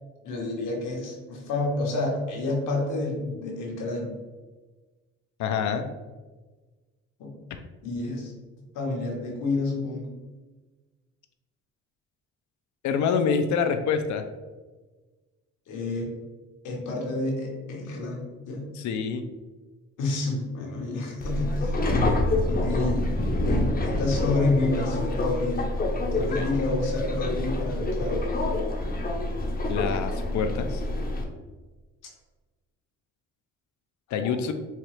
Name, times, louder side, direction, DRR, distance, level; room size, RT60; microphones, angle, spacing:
voice 1, 0.2-4.1 7.2-7.3 7.8-8.3 8.7-10.1 15.7-16.1 16.6-18.7 20.0-21.8 22.5-23.1 23.5-25.7 26.1-28.2 34.2-34.3, left 2 dB, 90° left, -1 dB, 1.0 m, -29 dB
voice 2, 5.4-5.8 7.5-7.6 12.8-14.2 18.7-19.3 26.2-26.5 29.7-30.8 34.1-34.5, left 6 dB, 70° left, 7 dB, 0.4 m, -26 dB
Subway metro underground, 21.2-31.2, left 1 dB, 30° left, 0.6 m, -27 dB
4.3 x 2.4 x 3.1 m, 1.3 s
cardioid pair, 90°, 30 cm